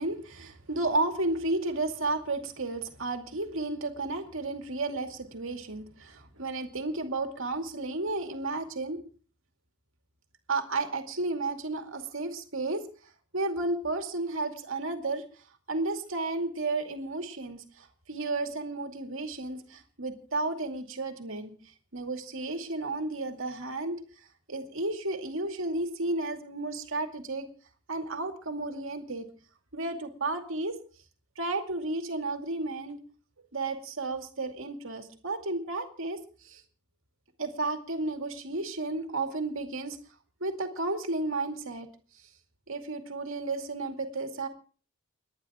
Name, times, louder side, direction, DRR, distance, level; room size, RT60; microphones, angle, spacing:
voice 1, 0.0-9.0 10.5-12.8 13.3-15.2 15.7-21.5 21.9-24.0 24.5-27.5 27.9-29.3 29.7-30.8 31.4-33.0 33.4-36.6 37.4-40.0 40.4-41.9 42.7-44.5, right 2 dB, 65° right, 5 dB, 2.4 m, -32 dB
30.0 x 10.5 x 3.6 m, 0.41 s
head